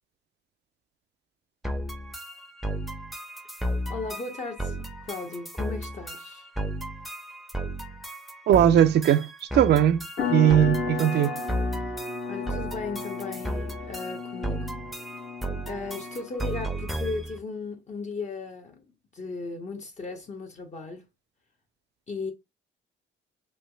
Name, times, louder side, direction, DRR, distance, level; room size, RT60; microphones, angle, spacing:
sound 1, 1.6-17.4, right 1 dB, ahead, 0.6 m, -34 dB
voice 1, 3.9-6.5 12.3-14.8 15.7-18.8 19.1-21.1 22.1-22.3, left 3 dB, 35° left, 0.7 m, -36 dB
voice 2, 8.5-11.3, right 10 dB, 60° right, 0.4 m, -20 dB
sound 2, 10.2-16.4, left 4 dB, 90° left, 1.2 m, -34 dB
3.3 x 3.0 x 2.2 m
cardioid pair, 90°, 20 cm